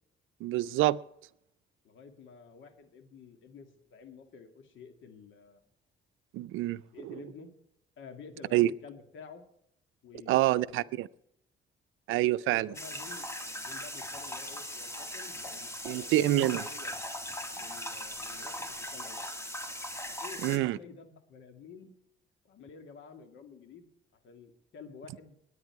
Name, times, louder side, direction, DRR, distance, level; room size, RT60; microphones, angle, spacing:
voice 1, 0.4-1.0 6.3-6.8 8.5-8.7 10.3-11.1 12.1-12.7 15.8-16.6 20.4-20.8, right 15 dB, 90° right, 0.5 m, -26 dB
voice 2, 1.8-5.6 6.9-7.5 8.0-9.4 10.0-11.0 12.5-13.3 13.6-17.0 17.5-18.5 18.8-19.2 20.2-21.9 22.4-23.9 24.2-25.4, left 5 dB, 75° left, 2.1 m, -50 dB
sound 1, 12.7-20.6, left 1 dB, 15° left, 1.9 m, -39 dB
19.0 x 9.8 x 4.7 m
cardioid pair, 90°, 20 cm